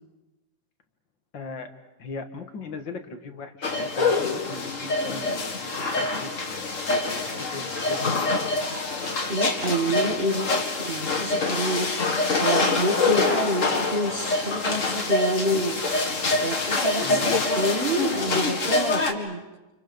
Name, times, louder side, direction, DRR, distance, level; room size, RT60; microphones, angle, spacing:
voice 1, 1.3-1.7 2.0-8.5 17.0-17.5, left 3 dB, 85° left, 6 dB, 2.5 m, -39 dB
sound 1, 3.6-19.1, left 3 dB, 45° left, 2.3 m, -25 dB
voice 2, 9.3-19.4, right 1 dB, 35° right, 0 dB, 1.8 m, -28 dB
29.5 x 28.0 x 5.3 m, 1.1 s
omnidirectional pair, 2.0 m